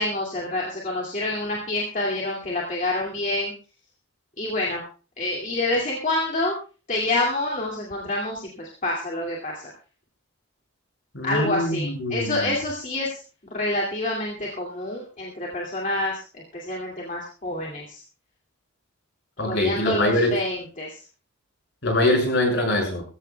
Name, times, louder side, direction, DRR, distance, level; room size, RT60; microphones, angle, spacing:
voice 1, 0.0-3.5 4.4-4.8 5.2-6.5 6.9-9.7 11.2-13.2 13.5-18.0 19.4-21.0, left 2 dB, 35° left, -2 dB, 2.3 m, -27 dB
voice 2, 11.1-12.5 19.4-20.3 21.8-23.0, left 1 dB, 55° left, 2 dB, 6.1 m, -23 dB
21.5 x 15.0 x 2.3 m, 0.35 s
head